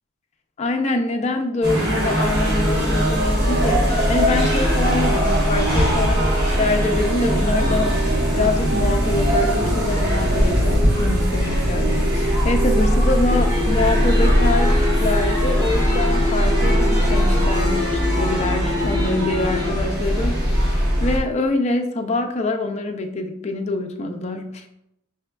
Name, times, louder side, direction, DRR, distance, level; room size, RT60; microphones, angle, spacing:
voice 1, 0.6-20.7 21.0-24.7, left 2 dB, 35° left, 4 dB, 0.4 m, -25 dB
sound 1, 1.6-21.2, equal, 50° right, 1.5 m, -20 dB
sound 2, 13.3-19.7, left 3 dB, 20° right, 0.7 m, -27 dB
5.1 x 3.4 x 2.2 m, 0.81 s
head